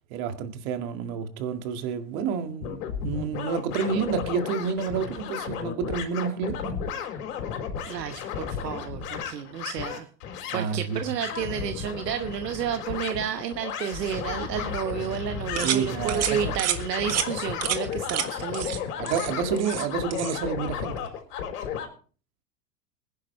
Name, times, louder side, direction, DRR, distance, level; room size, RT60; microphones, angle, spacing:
voice 1, 0.1-6.8 10.5-11.0 15.6-16.6 19.0-21.1, right 6 dB, 55° right, 2.2 m, -29 dB
sound 1, 2.6-21.9, left 7 dB, 65° left, 4.2 m, -34 dB
voice 2, 7.9-10.1 10.5-18.7 19.0-19.1, right 9 dB, 80° right, 1.2 m, -31 dB
sound 2, 15.6-15.8 16.1-16.3 16.6-16.8 17.1-17.3 17.6-17.8 18.1-18.3 18.5-18.8 19.1-19.9 20.1-20.4, right 10 dB, 30° right, 1.5 m, -28 dB
21.0 x 10.5 x 3.3 m
hypercardioid pair, 100°, 49 cm